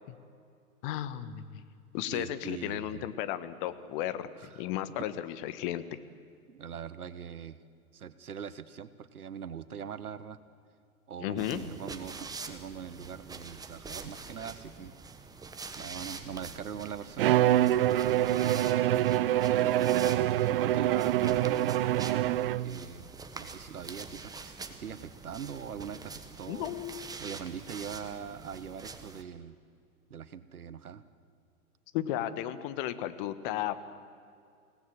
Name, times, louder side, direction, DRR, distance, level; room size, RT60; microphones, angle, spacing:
voice 1, 0.8-1.6 1.9-5.8 11.2-11.6 26.5-27.1 31.9-33.9, left 12 dB, 35° left, 12 dB, 1.3 m, -34 dB
voice 2, 2.1-3.1 4.4-4.6 5.0-5.1 6.5-7.6 7.9-10.4 11.1-14.9 15.8-18.7 19.5-26.7 27.2-29.6 30.1-31.0, right 7 dB, 75° right, 14 dB, 1.3 m, -42 dB
sound 1, 11.4-29.2, right 4 dB, 10° right, 1.3 m, -45 dB
Bowed string instrument, 17.2-22.8, right 13 dB, 40° right, 0.5 m, -25 dB
28.5 x 18.0 x 7.6 m, 2.4 s
figure-of-eight pair, 110°, 45 cm